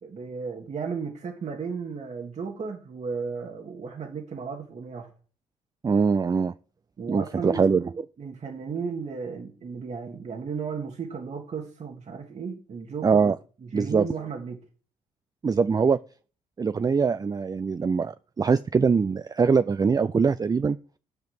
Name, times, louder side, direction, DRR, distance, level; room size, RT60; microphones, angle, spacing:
voice 1, 0.0-5.1 7.0-7.8 8.2-13.3 13.6-14.6, right 5 dB, 45° right, 1.7 m, -34 dB
voice 2, 5.8-6.5 7.1-7.9 13.0-13.4 13.7-14.0 15.4-16.0 16.6-20.8, right 5 dB, 25° right, 0.4 m, -22 dB
9.6 x 5.0 x 7.8 m
hypercardioid pair, 45°, 16 cm